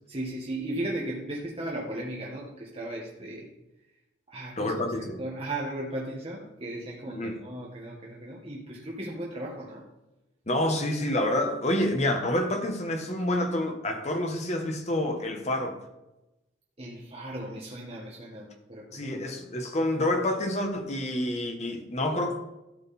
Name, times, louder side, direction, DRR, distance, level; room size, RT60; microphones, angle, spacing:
voice 1, 0.1-3.5 4.3-4.7 5.2-9.9 16.8-19.2, right 1 dB, 30° right, 1.6 m, -36 dB
voice 2, 4.6-5.2 7.1-7.4 10.5-15.8 18.9-22.4, left 1 dB, 35° left, 1.4 m, -28 dB
13.5 x 7.8 x 4.3 m
head